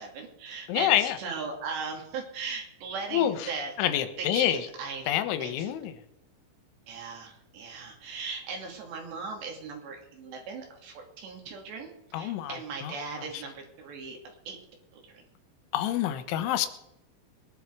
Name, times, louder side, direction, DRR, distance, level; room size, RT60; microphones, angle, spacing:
voice 1, 0.0-3.7 4.2-5.0 5.4-5.7 6.9-11.9 12.2-14.2 14.5-14.6 14.9-15.0, right 5 dB, 70° right, 1 dB, 4.7 m, -38 dB
voice 2, 0.7-1.2 3.1-3.3 3.8-4.6 5.1-5.9 12.1-12.6 15.7-16.7, left 12 dB, 85° left, 10 dB, 3.4 m, -26 dB
21.5 x 11.5 x 4.8 m, 0.80 s
omnidirectional pair, 5.4 m